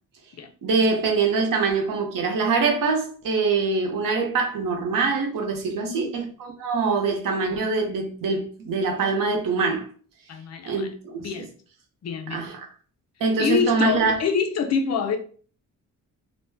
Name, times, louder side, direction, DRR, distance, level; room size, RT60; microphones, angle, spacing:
voice 1, 0.6-9.9 10.7-11.4 12.3-12.6 13.2-14.2, right 4 dB, 80° right, 0.9 m, -24 dB
voice 2, 5.8-6.2 10.3-10.9 11.2-11.5 12.0-12.5 13.4-15.2, left 6 dB, 50° left, 0.5 m, -26 dB
2.6 x 2.1 x 3.4 m
wide cardioid pair, 150°, 33 cm